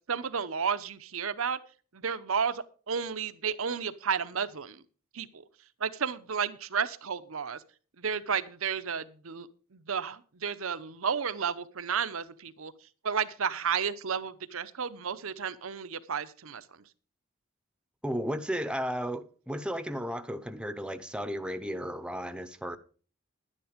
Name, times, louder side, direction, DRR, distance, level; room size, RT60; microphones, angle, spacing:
voice 1, 0.1-1.6 1.9-4.8 5.1-5.4 5.8-7.6 8.0-12.7 13.0-16.6, right 6 dB, 75° right, 0.8 m, -32 dB
voice 2, 18.0-22.8, equal, 5° right, 0.7 m, -34 dB
11.0 x 9.9 x 5.1 m
head